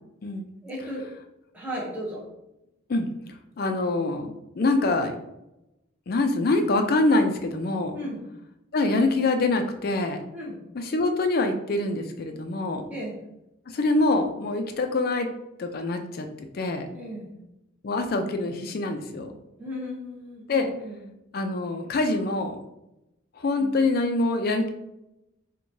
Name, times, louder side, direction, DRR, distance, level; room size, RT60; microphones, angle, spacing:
voice 1, 0.6-1.1 1.5-2.2 7.9-8.2 10.3-10.6 12.9-13.2 16.9-17.3 19.6-21.1 23.6-23.7, equal, 10° right, -5 dB, 0.7 m, -35 dB
voice 2, 3.6-4.3 4.6-5.2 6.1-8.0 8.7-10.2 10.7-12.8 13.7-15.3 15.6-16.9 17.8-19.3 20.5-20.7 21.3-22.6 23.4-24.7, left 2 dB, 45° left, 6 dB, 0.4 m, -25 dB
4.5 x 2.2 x 2.6 m, 0.89 s
head